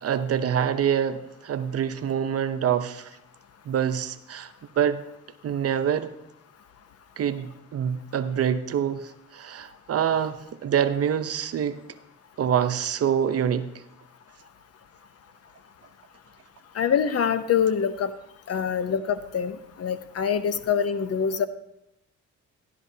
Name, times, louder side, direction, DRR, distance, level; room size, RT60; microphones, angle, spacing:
voice 1, 0.0-3.1 3.7-5.0 5.4-6.1 7.2-10.4 10.6-11.8 12.4-13.7, right 8 dB, 50° right, 11 dB, 0.7 m, -26 dB
voice 2, 16.7-18.1 18.5-21.5, left 7 dB, 55° left, 12 dB, 0.8 m, -25 dB
13.5 x 11.5 x 2.8 m, 0.82 s
cardioid pair, 90°, 30 cm